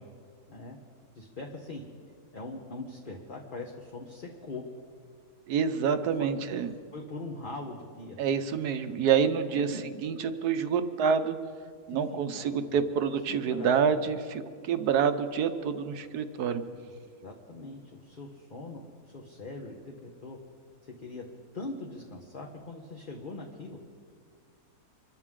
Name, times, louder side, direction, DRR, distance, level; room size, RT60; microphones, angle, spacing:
voice 1, 1.1-1.8 2.3-4.6 6.2-6.3 6.9-8.2 9.5-9.9 11.9-12.5 13.3-14.0 16.7-16.9 17.2-20.4 20.8-21.2 21.5-23.8, left 2 dB, 35° left, 0 dB, 1.2 m, -41 dB
voice 2, 5.5-6.7 8.2-11.4 11.9-16.6, right 7 dB, 70° right, 9 dB, 1.3 m, -27 dB
25.5 x 13.5 x 3.7 m, 2.1 s
omnidirectional pair, 1.8 m